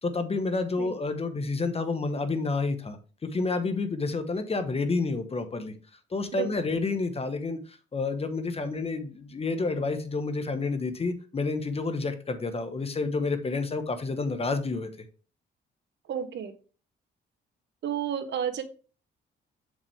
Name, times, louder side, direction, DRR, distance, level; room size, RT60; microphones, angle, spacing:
voice 1, 0.0-5.7 6.1-14.9, left 3 dB, 30° left, 9 dB, 1.0 m, -29 dB
voice 2, 16.1-16.5 17.8-18.6, right 8 dB, 65° right, 10 dB, 1.1 m, -31 dB
6.8 x 5.3 x 3.3 m, 0.36 s
cardioid pair, 90°, 20 cm